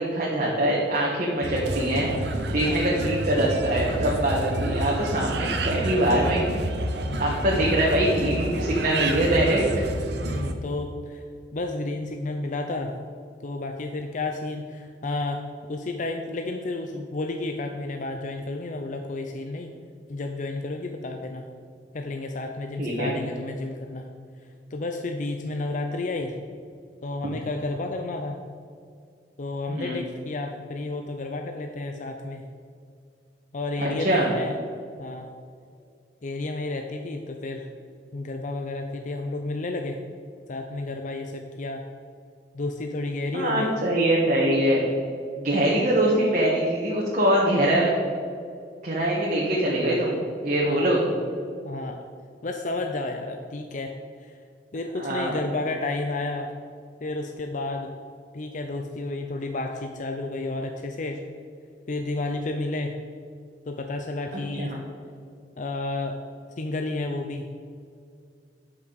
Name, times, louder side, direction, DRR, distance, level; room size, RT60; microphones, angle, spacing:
voice 1, 0.0-2.1 2.5-6.5 7.2-9.8 22.8-23.1 29.7-30.0 33.8-34.3 43.3-44.8 45.4-47.9 48.8-51.1 55.0-55.3 64.3-64.8, right 1 dB, 45° right, -5 dB, 1.4 m, -23 dB
sound 1, 1.4-10.5, right 1 dB, 65° right, 0.8 m, -29 dB
voice 2, 2.5-2.9 7.1-7.7 10.2-11.2 11.5-12.9 13.4-15.4 15.7-19.7 20.1-21.5 21.9-24.1 24.7-26.3 27.0-28.4 29.4-32.4 33.5-34.5 35.0-35.3 36.2-37.7 38.1-40.0 40.5-41.8 42.5-43.7 50.7-50.9 51.6-52.0 52.4-53.9 54.2-54.4 54.7-56.5 57.0-57.9 58.3-61.2 61.9-62.9 63.6-64.7 65.6-66.2 66.6-67.5, left 2 dB, 45° left, 4 dB, 0.5 m, -31 dB
12.0 x 6.0 x 4.0 m, 2.3 s
head